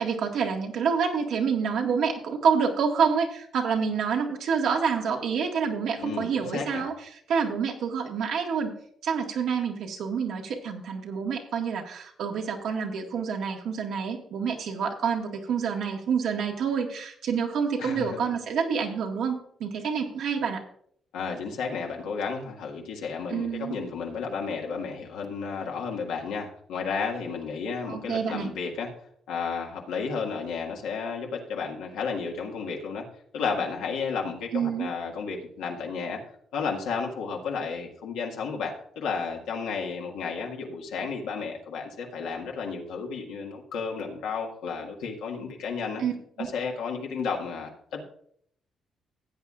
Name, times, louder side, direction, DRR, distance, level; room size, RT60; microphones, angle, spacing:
voice 1, 0.0-6.9 7.3-8.7 9.0-20.6 23.3-23.8 27.9-28.5 34.5-34.9 46.0-46.1 46.4-46.5, right 6 dB, 75° right, 2 dB, 1.7 m, -27 dB
voice 2, 6.0-6.8 17.8-18.1 21.1-28.9 29.3-33.0 33.3-36.2 36.5-46.0 46.4-48.0, left 5 dB, 90° left, 0 dB, 1.9 m, -32 dB
15.5 x 8.7 x 2.5 m, 0.64 s
cardioid pair, 90°, 0 cm